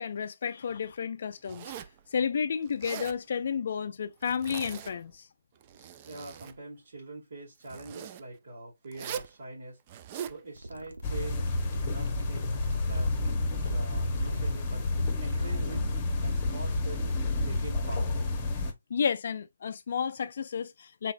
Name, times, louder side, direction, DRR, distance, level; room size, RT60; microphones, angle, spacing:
voice 1, 0.0-1.7 2.1-5.3 18.9-21.1, left 6 dB, 50° left, 0.4 m, -31 dB
Zipper (clothing), 1.4-2.0 2.7-3.2 4.2-5.0 5.6-6.6 7.6-8.2 8.9-9.3 9.9-10.4, right 8 dB, 25° right, 0.4 m, -41 dB
voice 2, 6.1-9.8 10.3-11.5 11.8-13.2 13.5-15.9 16.2-17.1 17.4-18.4, right 2 dB, 65° right, 2.4 m, -44 dB
sound 1, 10.5-16.1, right 2 dB, 90° right, 1.0 m, -45 dB
sound 2, 11.0-18.7, left 2 dB, 20° left, 1.1 m, -30 dB
4.0 x 3.9 x 2.6 m
hypercardioid pair, 165°, 0 cm